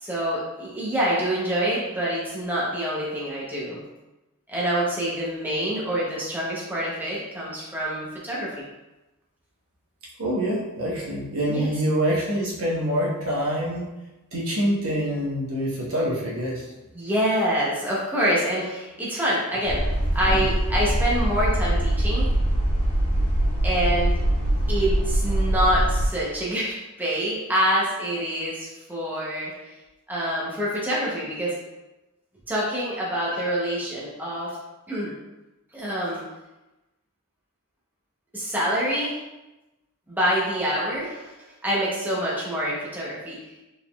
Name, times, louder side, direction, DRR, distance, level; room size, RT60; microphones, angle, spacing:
voice 1, 0.0-3.8 4.5-8.6 11.5-11.7 16.9-19.8 20.1-22.3 23.6-24.1 24.7-29.5 30.1-31.6 32.5-34.6 34.9-35.2 35.7-36.2 38.3-39.2 40.1-41.3 41.6-43.4, equal, 10° right, -7 dB, 0.7 m, -26 dB
voice 2, 10.2-13.9 14.3-16.6 20.3-20.4, equal, 65° right, -4 dB, 1.1 m, -26 dB
sound 1, 19.6-26.1, right 1 dB, 75° left, 1.1 m, -23 dB
4.1 x 3.7 x 2.3 m, 1.0 s
head